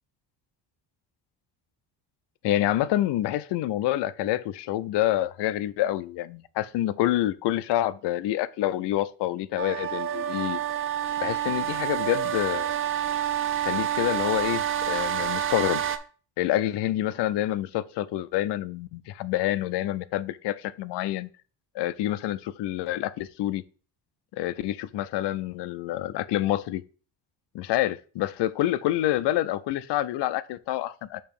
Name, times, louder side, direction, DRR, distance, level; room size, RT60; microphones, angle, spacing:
voice 1, 2.4-10.6 11.2-12.7 13.6-15.8 16.4-21.3 21.7-23.6 24.3-26.8 27.5-31.2, left 14 dB, 70° left, 0.6 m, -27 dB
sound 1, 9.6-16.0, right 10 dB, 30° right, 0.4 m, -28 dB
6.6 x 3.1 x 5.3 m
cardioid pair, 135°, 44 cm